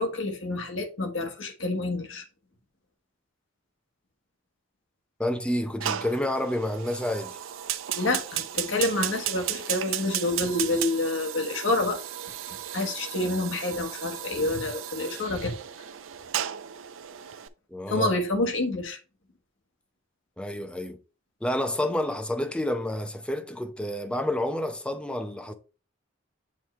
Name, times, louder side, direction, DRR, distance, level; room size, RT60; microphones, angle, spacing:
voice 1, 0.0-2.2 7.9-12.0 12.7-15.6 17.9-19.0, left 2 dB, 80° left, 1.4 m, -28 dB
voice 2, 5.2-7.4 17.7-18.1 20.4-21.0 21.4-25.5, left 1 dB, 5° left, 0.6 m, -29 dB
Fire, 5.8-17.5, right 11 dB, 90° right, 0.5 m, -34 dB
7.4 x 3.2 x 4.4 m
head